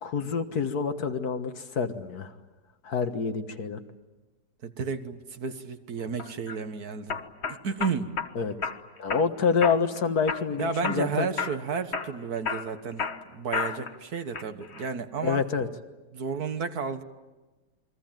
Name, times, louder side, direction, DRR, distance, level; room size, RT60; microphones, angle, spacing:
voice 1, 0.0-2.3 2.8-3.8 8.4-8.5 9.0-11.3 15.2-15.7, left 5 dB, 65° left, 8 dB, 1.9 m, -27 dB
voice 2, 4.6-7.2 7.5-8.2 10.6-15.4 16.1-17.0, right 5 dB, 60° right, 9 dB, 1.9 m, -32 dB
sound 1, 6.2-6.6 7.1-8.3 8.6-9.3 9.6-10.0 10.3-11.1 11.4-11.6 11.9-14.0 14.3-14.9, left 5 dB, 40° left, 1.5 m, -32 dB
29.0 x 22.5 x 9.1 m, 1.2 s
omnidirectional pair, 1.8 m